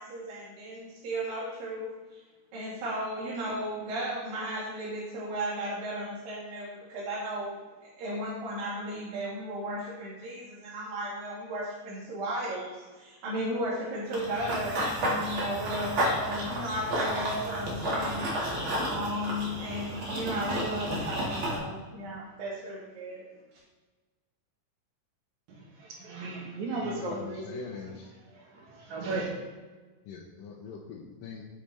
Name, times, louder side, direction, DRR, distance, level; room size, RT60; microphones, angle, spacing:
voice 1, 0.0-2.2 2.5-7.6 8.0-18.4 18.9-23.2, right 1 dB, 85° right, -6 dB, 3.5 m, -35 dB
Run / Bird vocalization bird call bird song, 14.1-21.6, equal, 45° right, 2.2 m, -31 dB
voice 2, 25.5-27.6 28.3-29.3, right 3 dB, 65° right, -1 dB, 2.4 m, -36 dB
voice 3, 26.8-28.1 30.1-31.4, left 6 dB, 85° left, -1 dB, 2.4 m, -42 dB
8.7 x 7.6 x 3.3 m, 1.3 s
omnidirectional pair, 3.9 m